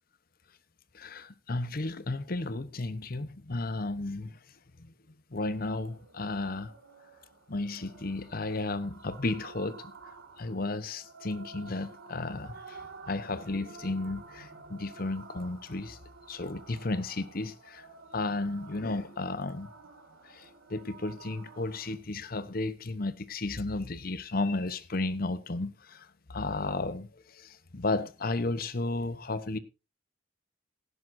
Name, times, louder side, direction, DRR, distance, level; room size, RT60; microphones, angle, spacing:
voice 1, 0.9-4.4 5.3-6.7 7.5-9.9 10.4-16.0 16.3-17.9 18.1-19.7 20.2-29.6, left 2 dB, 50° left, 1.0 m, -33 dB
sound 1, 5.4-22.0, right 4 dB, 85° right, 2.1 m, -51 dB
17.0 x 11.0 x 2.7 m
head